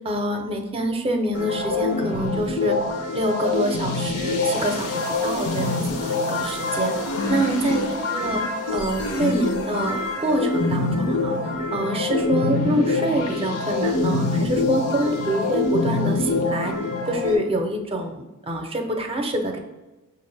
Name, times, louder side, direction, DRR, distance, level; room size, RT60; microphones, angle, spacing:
voice 1, 0.0-2.8 3.1-6.9 7.3-7.8 8.1-8.4 8.7-11.4 11.7-16.7 17.1-19.6, right 1 dB, 25° right, 4 dB, 0.6 m, -26 dB
sound 1, 1.3-17.3, left 3 dB, 85° left, 0.7 m, -25 dB
5.8 x 2.5 x 3.3 m, 1.1 s
head